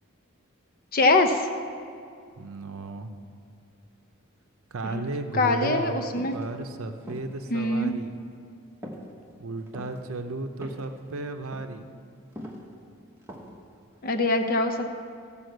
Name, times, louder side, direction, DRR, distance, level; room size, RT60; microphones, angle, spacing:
voice 1, 0.9-1.5 4.8-5.0 5.3-6.4 7.5-7.9 14.0-14.9, left 2 dB, 40° left, 6 dB, 0.7 m, -23 dB
voice 2, 2.4-3.1 4.7-6.0 6.3-8.2 9.4-11.9, right 3 dB, 70° right, 7 dB, 0.6 m, -34 dB
sound 1, 6.2-6.5 7.0-7.4 7.9-8.1 8.8-9.1 9.6-10.0 10.6-11.0 11.3-11.7 12.3-12.7 13.2-13.6 13.9-14.0, equal, 10° right, 1.2 m, -41 dB
13.0 x 5.5 x 7.9 m, 2.4 s
head